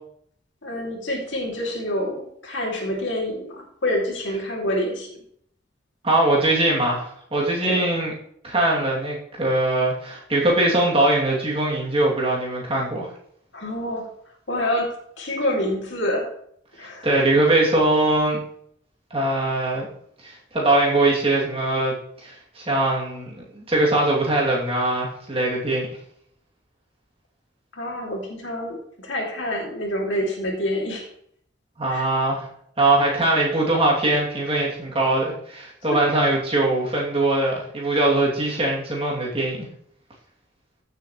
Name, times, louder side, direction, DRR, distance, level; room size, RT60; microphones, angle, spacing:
voice 1, 0.6-5.1 7.6-7.8 13.5-14.1 14.5-16.3 16.8-17.1 27.7-31.0 31.9-32.1 35.9-36.0, left 1 dB, 75° left, 0 dB, 2.8 m, -27 dB
voice 2, 6.0-8.1 8.4-13.1 17.0-18.4 19.1-19.9 20.2-21.9 22.2-25.9 31.8-32.5 32.8-39.7, right 2 dB, 30° right, -4 dB, 2.9 m, -21 dB
14.5 x 7.2 x 3.2 m, 0.68 s
head